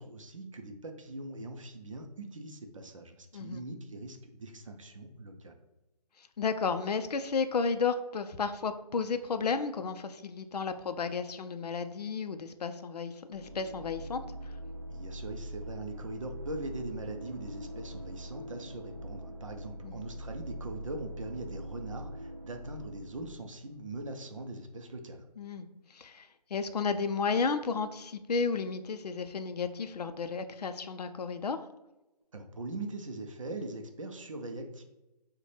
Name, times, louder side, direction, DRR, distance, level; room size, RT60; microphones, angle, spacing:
voice 1, 0.0-5.6 14.9-25.3 32.3-34.8, right 2 dB, 50° right, 5 dB, 0.6 m, -41 dB
voice 2, 6.2-14.5 19.8-20.0 25.4-31.6, left 5 dB, 70° left, 10 dB, 0.5 m, -33 dB
sound 1, 13.3-24.1, right 1 dB, 5° right, 0.6 m, -43 dB
6.3 x 2.2 x 3.3 m, 0.98 s
hypercardioid pair, 175°, 21 cm